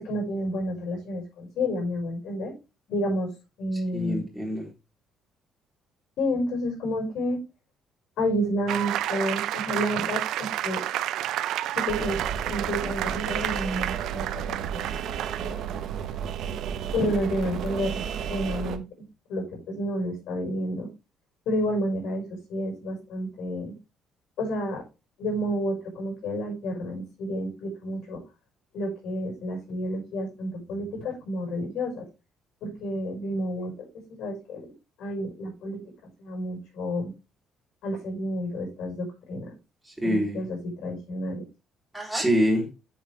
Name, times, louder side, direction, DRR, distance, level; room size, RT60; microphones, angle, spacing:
voice 1, 0.0-2.5 2.9-3.3 3.6-4.3 6.2-7.4 8.2-10.8 11.8-12.2 12.5-14.8 15.1-15.7 16.9-18.0 18.3-18.8 19.3-20.9 21.5-22.2 22.5-23.7 24.4-24.8 25.2-28.2 28.7-32.1 32.6-33.7 34.1-34.7 35.0-35.8 36.2-37.1 37.8-39.5 40.0-41.4, equal, 70° left, 1 dB, 5.3 m, -30 dB
voice 2, 3.9-4.7 39.9-40.4 41.9-42.7, equal, ahead, -1 dB, 3.8 m, -25 dB
sound 1, 8.7-15.8, right 12 dB, 80° right, 0.6 m, -31 dB
sound 2, 11.9-18.8, right 7 dB, 65° right, 1.1 m, -32 dB
8.8 x 7.6 x 3.4 m, 0.28 s
cardioid pair, 155°, 0 cm